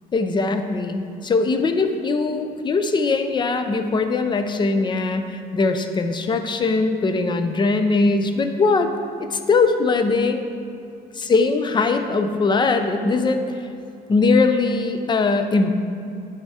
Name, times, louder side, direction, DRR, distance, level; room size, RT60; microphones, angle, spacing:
voice 1, 0.1-8.9 9.2-10.4 11.2-13.7 14.1-15.7, left 3 dB, 25° left, 7 dB, 0.5 m, -21 dB
9.6 x 3.6 x 4.1 m, 2.6 s
cardioid pair, 110°, 17 cm